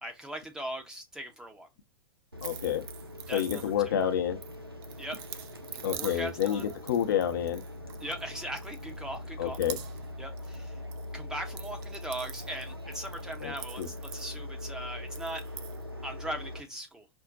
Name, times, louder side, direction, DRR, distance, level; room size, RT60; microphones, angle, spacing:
voice 1, 0.0-1.7 3.3-3.9 5.0-5.2 5.7-6.7 8.0-9.6 10.2-10.8 11.1-15.4 16.0-17.1, right 1 dB, 5° right, 0.7 m, -39 dB
sound 1, 2.3-16.6, left 1 dB, 90° right, 0.6 m, -42 dB
voice 2, 2.4-2.8 3.3-4.4 5.8-7.6 9.4-9.8 13.4-13.9, left 9 dB, 55° left, 0.7 m, -29 dB
sound 2, 2.4-4.0 4.4-8.2 8.6-9.2 9.5-10.1 10.4-11.0 11.3-14.7 15.1-15.8, right 11 dB, 30° right, 0.4 m, -45 dB
5.2 x 2.1 x 2.6 m
figure-of-eight pair, 95°, 12 cm